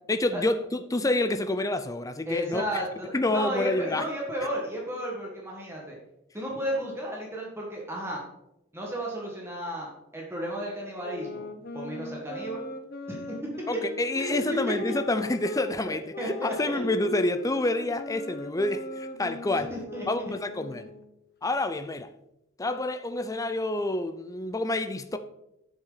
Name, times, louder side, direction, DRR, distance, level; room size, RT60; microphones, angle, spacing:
voice 1, 0.1-0.6 0.9-2.6 3.1-4.0 13.7-19.7 20.1-20.9 21.4-22.1 22.6-25.2, left 2 dB, 15° left, 0.5 m, -28 dB
voice 2, 2.3-6.0 6.3-8.2 8.7-11.5 11.7-12.7 13.1-13.5 14.2-14.7 15.8-15.9 16.2-16.8 19.7-20.0 20.7-20.8, equal, 10° right, 1.7 m, -33 dB
sound 1, 11.0-15.7 16.1-21.1, left 1 dB, 50° left, 1.0 m, -38 dB
10.0 x 8.3 x 4.0 m
head